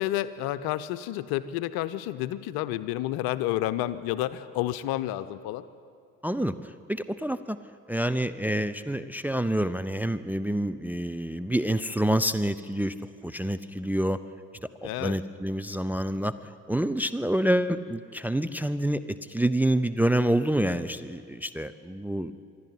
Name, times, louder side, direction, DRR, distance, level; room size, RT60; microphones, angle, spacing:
voice 1, 0.0-5.6 14.8-15.2, left 14 dB, 55° left, 14 dB, 0.9 m, -30 dB
voice 2, 6.2-6.5 6.9-7.6 7.9-12.9 13.2-14.2 14.8-16.3 16.7-22.3, right 1 dB, 5° right, 12 dB, 0.6 m, -27 dB
25.0 x 11.5 x 9.5 m, 2.4 s
figure-of-eight pair, 50°, 43 cm